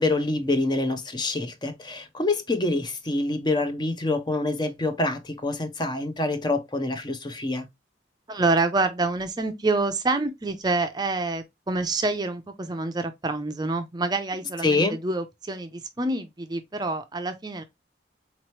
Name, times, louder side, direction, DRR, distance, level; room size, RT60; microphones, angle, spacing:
voice 1, 0.0-7.7 14.6-15.0, left 2 dB, 25° left, 0.6 m, -26 dB
voice 2, 8.3-17.6, right 3 dB, 25° right, 0.5 m, -27 dB
4.2 x 3.0 x 3.0 m
head